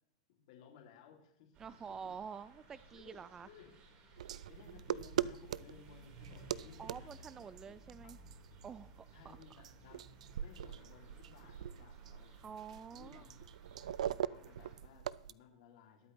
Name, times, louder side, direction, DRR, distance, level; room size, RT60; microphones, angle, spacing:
voice 1, 0.3-1.6 2.0-2.1 2.9-3.7 4.5-8.1 9.1-10.1 10.4-12.3 12.9-13.5 13.8-16.1, left 7 dB, 60° left, 1 dB, 2.5 m, -59 dB
sound 1, 1.5-14.8, right 2 dB, 30° right, 4.6 m, -59 dB
voice 2, 1.6-3.5 6.8-8.2 8.6-9.4 12.4-13.3, right 6 dB, 15° right, 14 dB, 0.3 m, -48 dB
sound 2, 4.2-15.3, right 10 dB, 90° right, 0.4 m, -42 dB
21.0 x 8.5 x 3.1 m, 0.81 s
supercardioid pair, 155°, 4 cm